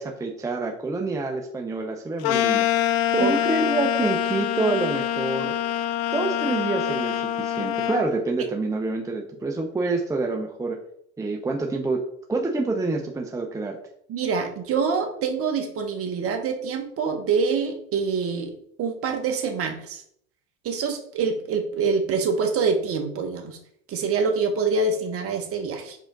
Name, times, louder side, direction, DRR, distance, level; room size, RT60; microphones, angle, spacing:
voice 1, 0.0-2.7 3.1-5.5 6.1-10.8 11.2-12.0 12.3-13.8, right 3 dB, 10° right, 1 dB, 0.7 m, -27 dB
sound 1, 2.2-8.1, left 11 dB, 45° left, 0.6 m, -25 dB
voice 2, 14.1-20.0 20.6-23.6 23.9-26.0, right 5 dB, 35° right, 4 dB, 1.3 m, -25 dB
5.8 x 5.0 x 3.8 m, 0.68 s
hypercardioid pair, 110°, 39 cm